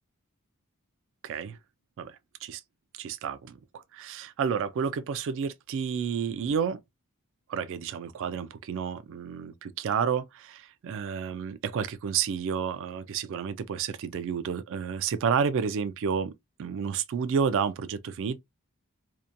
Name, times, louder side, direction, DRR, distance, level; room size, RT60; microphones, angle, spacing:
voice 1, 1.2-1.6 2.0-2.6 3.0-6.8 7.5-16.3 16.6-18.4, right 7 dB, 60° right, 0.3 m, -30 dB
2.8 x 2.1 x 2.4 m
head